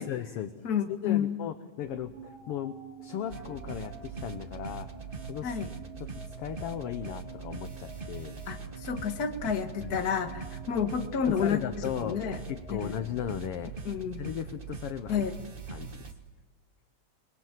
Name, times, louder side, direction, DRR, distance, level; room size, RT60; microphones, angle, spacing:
voice 1, 0.0-4.9 5.2-5.6 6.0-8.3 9.8-10.0 11.3-13.7 14.2-15.2 15.7-16.1, left 10 dB, 65° left, 11 dB, 1.5 m, -37 dB
voice 2, 0.6-1.4 5.4-5.7 8.5-11.6 12.0-12.4 12.7-12.9 13.9-14.2 15.1-15.3, left 7 dB, 40° left, 7 dB, 1.6 m, -30 dB
sound 1, 1.8-13.9, right 3 dB, 10° left, 7.7 m, -49 dB
sound 2, 3.3-16.1, right 6 dB, 40° right, 0.7 m, -42 dB
23.0 x 22.5 x 7.5 m, 1.4 s
omnidirectional pair, 3.4 m